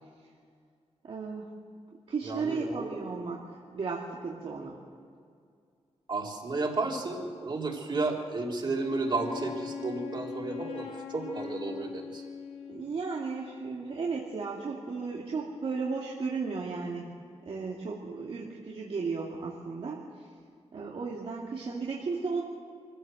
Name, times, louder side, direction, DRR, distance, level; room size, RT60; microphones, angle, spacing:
voice 1, 1.0-1.5 2.1-4.8 12.7-17.1 17.4-20.3 20.7-22.4, right 4 dB, 60° right, -3 dB, 2.3 m, -35 dB
voice 2, 2.2-2.9 6.1-12.2, right 3 dB, 45° right, -1 dB, 3.5 m, -32 dB
Wind instrument woodwind instrument, 8.7-13.1, left 7 dB, 65° left, 2.0 m, -40 dB
25.0 x 15.5 x 7.8 m, 2.2 s
wide cardioid pair, 135°, 11 cm